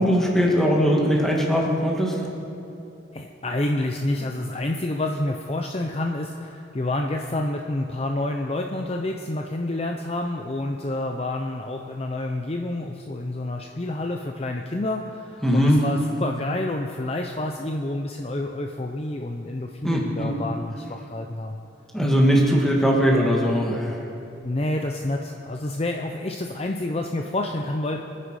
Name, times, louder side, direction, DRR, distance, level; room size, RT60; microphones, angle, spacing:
voice 1, 0.0-2.3 15.4-15.8 19.8-20.3 21.9-24.0, equal, ahead, -2 dB, 2.0 m, -20 dB
voice 2, 3.1-21.6 24.4-28.0, left 1 dB, 30° left, 3 dB, 0.6 m, -28 dB
24.5 x 10.0 x 4.8 m, 2.8 s
head